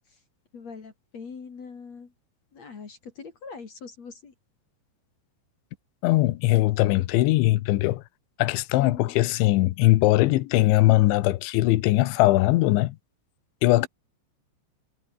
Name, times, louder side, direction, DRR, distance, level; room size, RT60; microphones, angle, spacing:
voice 1, 0.5-2.1 2.5-4.3 8.8-9.2 13.8-13.9, left 5 dB, 40° left, 3.6 m, -42 dB
voice 2, 6.0-8.0 8.4-13.0 13.6-13.9, left 17 dB, 85° left, 3.4 m, -20 dB
omnidirectional pair, 5.2 m